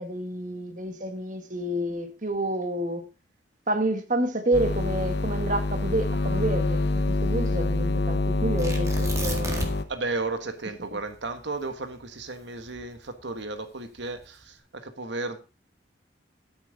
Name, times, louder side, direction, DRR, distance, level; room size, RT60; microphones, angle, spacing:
voice 1, 0.0-3.1 3.7-9.7, right 1 dB, 40° right, 1.5 m, -29 dB
sound 1, 4.5-9.8, left 2 dB, 60° left, 1.0 m, -26 dB
Tearing, 8.6-10.0 10.3-10.4 10.9-13.3 14.0-14.4, right 1 dB, 15° right, 1.7 m, -34 dB
voice 2, 9.9-15.4, right 3 dB, 70° right, 1.4 m, -34 dB
10.5 x 8.8 x 4.0 m
head